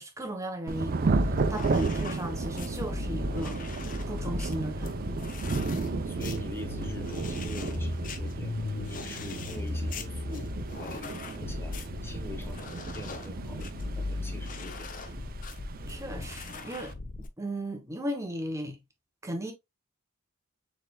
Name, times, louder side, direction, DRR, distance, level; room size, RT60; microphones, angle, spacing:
voice 1, 0.0-5.0 15.9-16.9 17.2-18.8 19.2-19.5, right 1 dB, 15° right, 0.8 m, -36 dB
Thunder / Rain, 0.7-16.9, right 3 dB, 45° right, 0.5 m, -34 dB
sound 1, 1.1-17.3, left 2 dB, 40° left, 0.6 m, -37 dB
voice 2, 6.0-10.5 10.8-15.0, left 2 dB, 10° left, 1.1 m, -45 dB
6.4 x 3.3 x 2.3 m
head